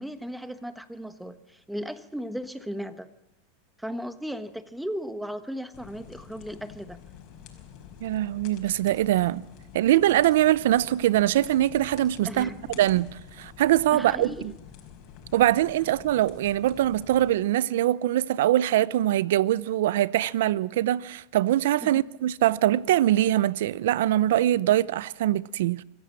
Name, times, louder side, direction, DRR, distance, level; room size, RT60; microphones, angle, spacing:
voice 1, 0.0-3.1 3.8-7.0 12.2-12.8 13.9-14.5 21.8-22.0, equal, ahead, 1.2 m, -36 dB
sound 1, 5.7-17.3, left 8 dB, 50° left, 5.0 m, -48 dB
voice 2, 8.0-9.4 9.7-14.5 15.3-25.8, right 13 dB, 75° right, 0.6 m, -23 dB
24.0 x 14.5 x 7.5 m
supercardioid pair, 130°, 0 cm